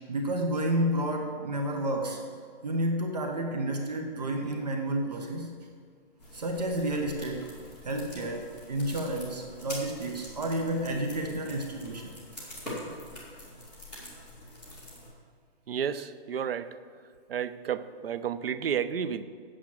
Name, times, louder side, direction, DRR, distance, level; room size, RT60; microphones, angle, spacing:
voice 1, 0.1-2.2 2.6-5.6 6.3-12.2, right 1 dB, 40° right, 3 dB, 0.8 m, -31 dB
sound 1, 6.2-15.1, left 1 dB, ahead, 0.6 m, -44 dB
voice 2, 15.7-16.8 17.3-19.2, right 8 dB, 70° right, 14 dB, 0.6 m, -31 dB
8.7 x 7.7 x 6.0 m, 2.1 s
hypercardioid pair, 180°, 31 cm